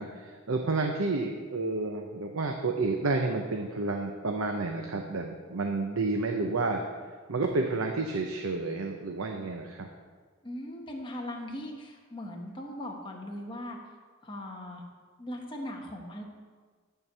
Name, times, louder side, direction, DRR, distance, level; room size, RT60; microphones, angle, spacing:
voice 1, 0.0-6.8 7.3-9.9, right 3 dB, 90° right, 3 dB, 0.8 m, -30 dB
voice 2, 10.4-13.8 14.2-14.8 15.2-16.2, left 1 dB, 25° left, 0 dB, 1.2 m, -39 dB
12.0 x 4.6 x 6.8 m, 1.5 s
head